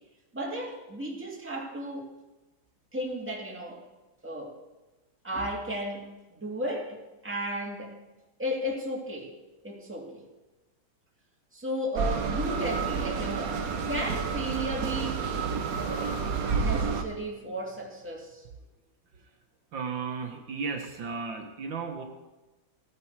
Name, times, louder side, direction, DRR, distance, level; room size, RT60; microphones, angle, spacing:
voice 1, 0.3-2.1 2.9-3.8 4.2-4.5 5.2-7.0 7.2-7.9 8.4-9.3 9.6-10.2 11.5-13.6 13.9-15.2 15.6-15.8 16.6-18.4, right 1 dB, 5° right, -2 dB, 2.1 m, -34 dB
sound 1, 12.0-17.0, right 5 dB, 55° right, 1.4 m, -29 dB
voice 2, 19.7-22.0, right 5 dB, 70° right, 4 dB, 1.9 m, -35 dB
17.0 x 9.2 x 4.7 m, 1.1 s
omnidirectional pair, 2.2 m